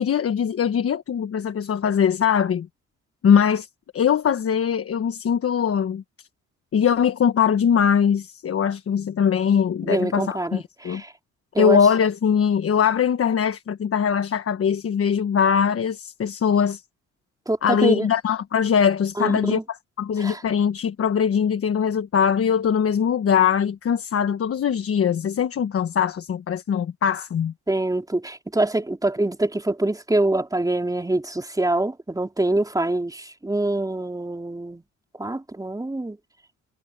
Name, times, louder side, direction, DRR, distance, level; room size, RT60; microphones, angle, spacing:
voice 1, 0.0-2.7 3.2-3.7 3.9-6.3 6.7-11.0 11.6-16.8 17.6-27.5, left 7 dB, 50° left, 1.3 m, -21 dB
voice 2, 9.8-11.1 11.5-11.8 17.5-18.1 19.2-19.6 20.2-20.4 27.7-34.8 35.2-36.2, right 2 dB, 10° right, 4.2 m, -25 dB
cardioid pair, 90°, 30 cm